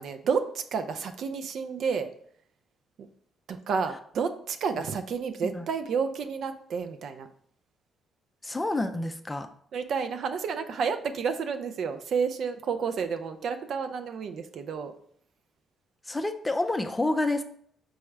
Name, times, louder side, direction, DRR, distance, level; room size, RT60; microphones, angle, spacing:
voice 1, 0.0-2.1 3.5-7.3 9.7-14.9, right 6 dB, 65° right, 8 dB, 0.4 m, -30 dB
voice 2, 8.4-9.5 16.0-17.4, left 2 dB, 15° left, 7 dB, 0.4 m, -28 dB
4.7 x 2.1 x 4.5 m, 0.63 s
cardioid pair, 90°, 0 cm